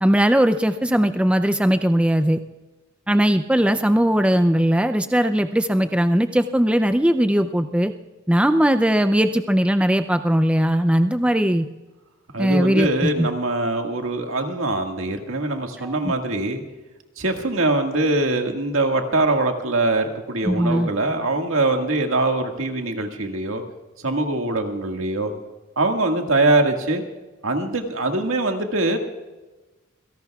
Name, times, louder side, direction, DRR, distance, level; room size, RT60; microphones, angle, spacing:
voice 1, 0.0-2.4 3.1-7.9 8.3-11.7 12.4-13.3 15.8-16.1 20.4-20.9, equal, 5° right, 9 dB, 0.4 m, -19 dB
voice 2, 12.3-16.6 17.2-23.6 24.0-25.3 25.8-27.0 27.4-29.0, right 2 dB, 85° right, 3 dB, 1.8 m, -22 dB
27.0 x 17.5 x 2.4 m, 1.1 s
head